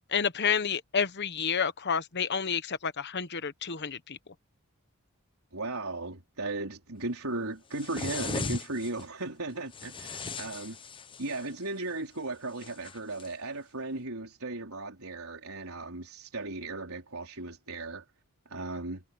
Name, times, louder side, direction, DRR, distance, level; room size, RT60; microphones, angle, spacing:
voice 1, 0.1-4.2, left 6 dB, 50° left, 1.1 m, -30 dB
voice 2, 5.5-10.8 11.2-18.0 18.5-19.0, right 2 dB, 75° right, 4.4 m, -36 dB
sound 1, 7.7-9.0 9.7-11.5 12.6-13.3, left 3 dB, 25° left, 0.8 m, -38 dB
head